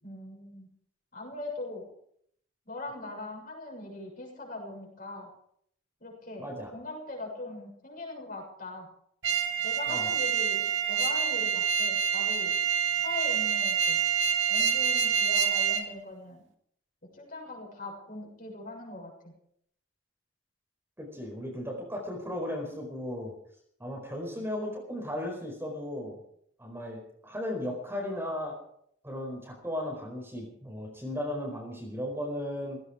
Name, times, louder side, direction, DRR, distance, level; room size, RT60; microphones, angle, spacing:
voice 1, 0.0-0.7 1.1-1.9 2.7-5.3 6.0-8.9 9.6-12.6 13.0-14.0 14.5-16.4 17.1-19.3, left 2 dB, 45° left, 0 dB, 6.8 m, -40 dB
voice 2, 6.4-6.7 9.9-10.1 21.0-23.3 23.8-26.2 26.6-28.6 29.0-32.8, left 1 dB, 10° right, 0 dB, 4.5 m, -36 dB
sound 1, 9.2-15.8, right 7 dB, 65° right, 2.1 m, -27 dB
17.0 x 16.5 x 4.9 m, 0.68 s
head